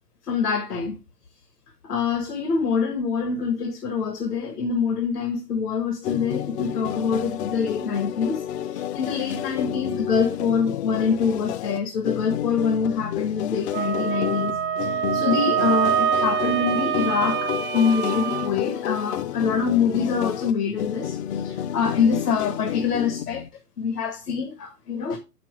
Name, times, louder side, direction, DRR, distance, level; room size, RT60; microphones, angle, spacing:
voice 1, 0.2-1.0 1.8-23.5 23.8-25.2, left 6 dB, 80° left, 1.5 m, -25 dB
sound 1, 6.0-23.5, left 11 dB, 45° left, 0.5 m, -30 dB
Wind instrument woodwind instrument, 13.7-18.5, right 10 dB, 20° right, 0.5 m, -25 dB
6.3 x 6.0 x 4.7 m
hypercardioid pair, 125°, 46 cm